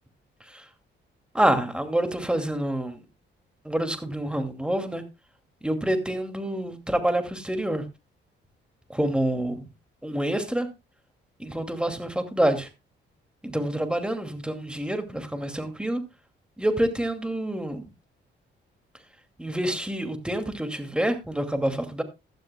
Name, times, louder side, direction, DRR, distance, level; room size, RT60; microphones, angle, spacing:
voice 1, 1.3-3.0 3.6-5.0 5.6-7.8 8.9-9.7 10.0-10.7 11.4-12.7 13.4-16.0 16.6-17.9 19.4-22.0, right 1 dB, 5° right, 2.5 m, -27 dB
16.0 x 12.0 x 2.3 m
cardioid pair, 90°, 20 cm